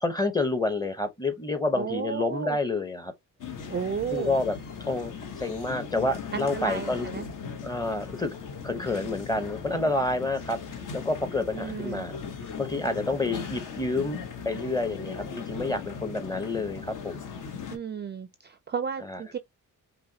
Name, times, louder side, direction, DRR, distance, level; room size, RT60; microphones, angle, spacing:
voice 1, 0.0-3.1 4.1-4.6 4.9-7.1 7.6-8.4 8.6-10.6 10.9-12.1 12.6-17.2 19.1-19.2, left 2 dB, 10° left, 0.7 m, -29 dB
voice 2, 1.7-2.6 3.7-4.4 6.3-7.3 11.5-12.1 17.7-19.4, right 7 dB, 30° right, 0.4 m, -33 dB
sound 1, 3.4-17.8, left 6 dB, 60° left, 1.0 m, -38 dB
5.4 x 2.2 x 2.7 m
cardioid pair, 95°, 35 cm